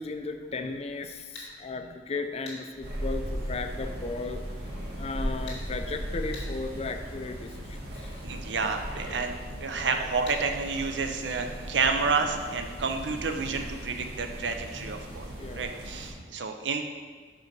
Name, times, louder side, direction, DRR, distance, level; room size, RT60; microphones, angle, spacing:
voice 1, 0.0-4.6 4.9-8.2 15.3-15.8, left 3 dB, 35° left, 7 dB, 0.4 m, -36 dB
sound 1, 1.3-1.5 2.5-2.6 5.5-5.6 6.3-6.5 10.3-10.4, left 3 dB, 90° left, 2.1 m, -41 dB
sound 2, 2.8-16.1, equal, 65° right, 1.5 m, -37 dB
voice 2, 8.2-9.3 9.6-15.3 15.5-16.8, right 4 dB, 85° right, 5 dB, 0.6 m, -30 dB
5.2 x 4.6 x 5.3 m, 1.5 s
head